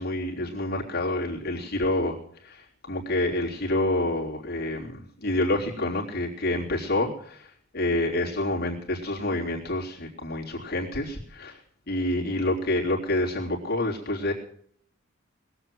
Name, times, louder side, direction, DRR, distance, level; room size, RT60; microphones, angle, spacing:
voice 1, 0.0-2.2 2.4-7.5 7.7-11.6 11.9-14.3, left 1 dB, 50° left, -3 dB, 3.3 m, -28 dB
20.5 x 7.9 x 7.6 m, 0.62 s
head